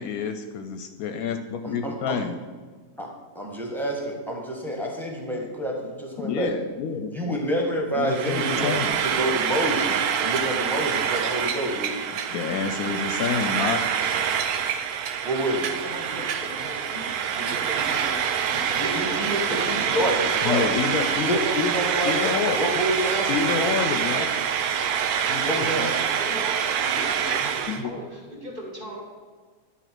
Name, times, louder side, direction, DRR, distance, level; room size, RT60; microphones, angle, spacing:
voice 1, 0.0-2.4 6.2-7.3 7.9-9.0 12.3-13.8 20.4-22.6 23.3-24.3 25.3-25.7 27.7-27.9, left 6 dB, 75° left, 7 dB, 1.0 m, -28 dB
voice 2, 1.6-2.2 3.0-3.1 3.3-6.5 7.1-12.0 15.2-15.7 18.7-20.7 21.2-22.3 22.6-23.4 25.4-26.0, right 1 dB, ahead, 0 dB, 1.3 m, -28 dB
Frying (food), 8.1-27.8, right 8 dB, 75° right, 1.2 m, -26 dB
voice 3, 15.4-20.1 25.7-29.0, right 1 dB, 35° right, -2 dB, 1.9 m, -38 dB
11.0 x 3.9 x 6.0 m, 1.5 s
omnidirectional pair, 1.6 m